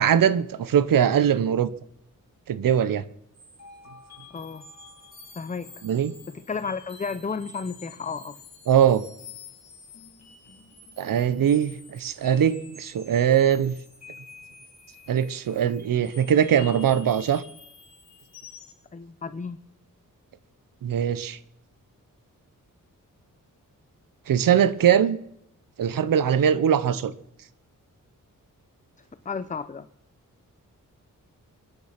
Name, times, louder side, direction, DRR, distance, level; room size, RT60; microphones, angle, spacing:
voice 1, 0.0-1.7 2.5-3.0 5.8-6.1 8.7-9.0 11.0-13.7 15.1-17.4 20.8-21.4 24.3-25.2 25.8-27.1, right 9 dB, 90° right, 16 dB, 1.0 m, -21 dB
sound 1, 3.3-18.8, left 5 dB, 50° left, 5.8 m, -48 dB
voice 2, 4.3-4.6 5.4-5.7 6.5-8.4 18.9-19.6 29.2-29.9, left 5 dB, 25° left, 12 dB, 0.7 m, -32 dB
22.5 x 10.5 x 5.9 m, 0.77 s
wide cardioid pair, 115°, 33 cm